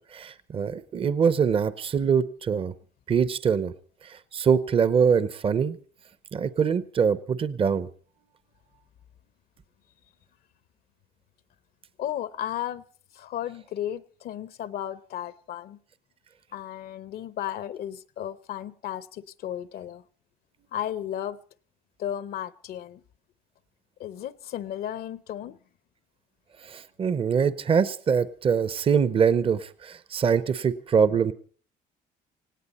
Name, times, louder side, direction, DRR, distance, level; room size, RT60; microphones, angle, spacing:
voice 1, 0.0-2.7 3.1-3.7 4.0-5.8 6.3-7.9 26.6-31.3, right 6 dB, 35° right, 15 dB, 0.7 m, -24 dB
voice 2, 12.0-12.8 13.1-15.8 16.5-20.0 20.7-21.4 22.0-23.0 24.0-25.6, left 11 dB, 65° left, 16 dB, 0.7 m, -34 dB
18.5 x 17.0 x 4.2 m, 0.44 s
cardioid pair, 110°, 17 cm